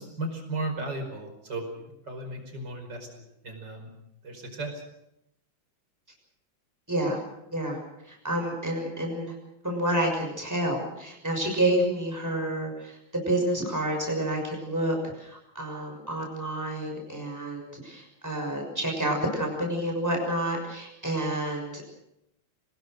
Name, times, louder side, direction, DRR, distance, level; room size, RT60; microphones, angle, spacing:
voice 1, 0.0-1.7 2.1-3.1 3.4-3.9 4.2-4.8, right 2 dB, 60° right, 5 dB, 5.9 m, -35 dB
voice 2, 6.9-7.2 7.5-9.3 9.6-21.8, right 1 dB, 10° right, 1 dB, 6.2 m, -29 dB
26.5 x 19.5 x 6.5 m, 0.83 s
omnidirectional pair, 2.1 m